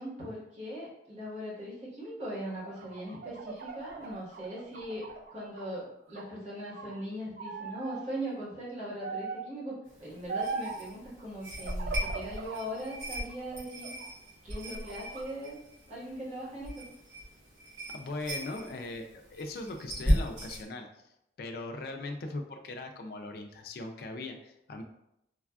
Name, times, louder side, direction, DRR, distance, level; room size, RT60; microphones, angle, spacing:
voice 1, 0.0-14.0 14.4-15.6 15.9-16.8, equal, 40° right, -7 dB, 1.1 m, -40 dB
sound 1, 2.5-5.7 6.1-7.0 7.4-8.0 9.0-9.5 10.3-10.8 11.6-12.6 13.1-14.1 14.5-15.2, right 3 dB, 55° right, 0.4 m, -39 dB
sound 2, 9.9-20.6, equal, 75° right, 1.3 m, -37 dB
voice 2, 17.9-20.9 21.4-24.8, left 2 dB, 60° left, 4 dB, 0.3 m, -39 dB
3.2 x 2.3 x 2.3 m, 0.81 s
head